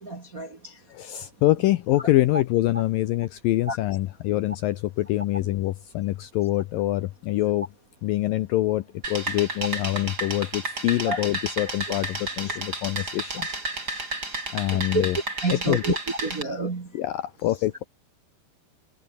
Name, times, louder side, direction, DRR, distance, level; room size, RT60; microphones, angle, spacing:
voice 1, 0.0-0.7 3.7-3.8 11.1-11.2 14.7-15.0 15.4-16.9, right 3 dB, 40° right, 1.2 m, -29 dB
voice 2, 0.9-7.7 8.0-13.5 14.5-15.2 15.5-16.0 16.9-17.8, left 16 dB, 85° left, 2.0 m, -25 dB
sound 1, 9.0-16.4, right 2 dB, 20° right, 6.1 m, -32 dB
omnidirectional pair, 5.0 m